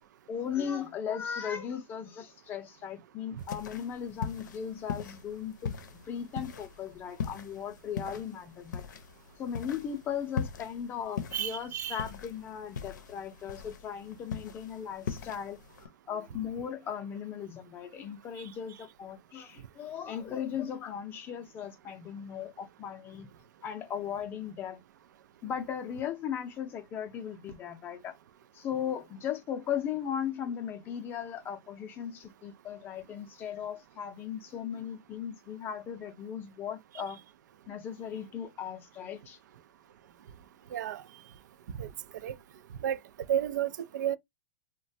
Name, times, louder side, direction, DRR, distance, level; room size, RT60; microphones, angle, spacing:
voice 1, 0.3-5.8 6.0-8.9 9.4-23.3 23.6-24.8 25.4-28.2 28.5-37.2 37.7-39.4, left 8 dB, 20° left, 0.5 m, -37 dB
sound 1, 3.4-15.9, left 6 dB, 90° left, 0.6 m, -41 dB
voice 2, 11.3-12.0 40.7-41.0 41.8-41.9 42.2-42.4 42.8-43.0 43.3-44.2, right 10 dB, 75° right, 0.4 m, -31 dB
3.0 x 2.2 x 2.6 m
supercardioid pair, 155°, 10 cm